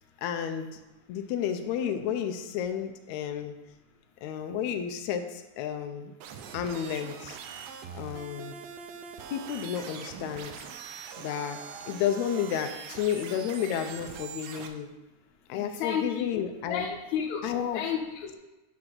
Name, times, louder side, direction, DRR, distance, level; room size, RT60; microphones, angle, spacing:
voice 1, 0.2-0.8 1.1-3.6 4.2-6.1 6.5-7.4 7.9-8.5 9.3-10.7 11.2-11.6 11.8-14.9 15.5-16.9 17.4-17.8, left 9 dB, 90° left, 6 dB, 1.6 m, -31 dB
sound 1, 6.2-14.7, right 7 dB, 80° right, 2.3 m, -42 dB
voice 2, 15.5-16.4 16.7-18.3, left 7 dB, 65° left, 2 dB, 2.1 m, -32 dB
9.8 x 3.8 x 5.9 m, 1.0 s
omnidirectional pair, 4.0 m